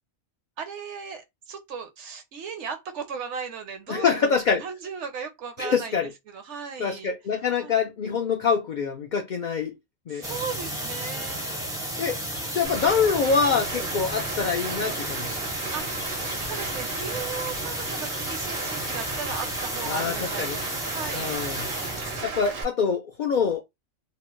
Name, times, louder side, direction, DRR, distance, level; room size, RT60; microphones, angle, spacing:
voice 1, 0.6-6.0 6.3-7.1 7.6-7.8 10.1-12.1 12.3-12.9 15.7-21.3, right 6 dB, 65° right, 0.9 m, -37 dB
voice 2, 3.9-4.6 5.6-6.1 6.8-9.7 10.1-10.2 12.0-12.2 12.5-15.3 19.9-20.6 21.1-21.7 22.2-23.6, left 6 dB, 70° left, 0.4 m, -25 dB
sound 1, 10.2-22.2, right 1 dB, 5° right, 0.4 m, -33 dB
Rain, 12.6-22.6, right 4 dB, 85° right, 1.2 m, -35 dB
2.9 x 2.0 x 3.0 m
omnidirectional pair, 1.4 m